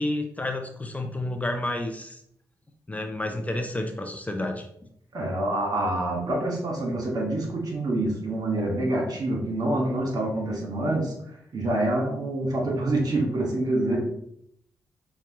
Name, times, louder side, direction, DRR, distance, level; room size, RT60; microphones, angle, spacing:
voice 1, 0.0-2.2 2.9-4.6, left 1 dB, 20° left, 4 dB, 0.6 m, -30 dB
voice 2, 5.1-11.1 11.5-14.1, right 1 dB, 55° right, 0 dB, 1.6 m, -26 dB
5.9 x 2.4 x 3.0 m, 0.71 s
supercardioid pair, 45°, 8 cm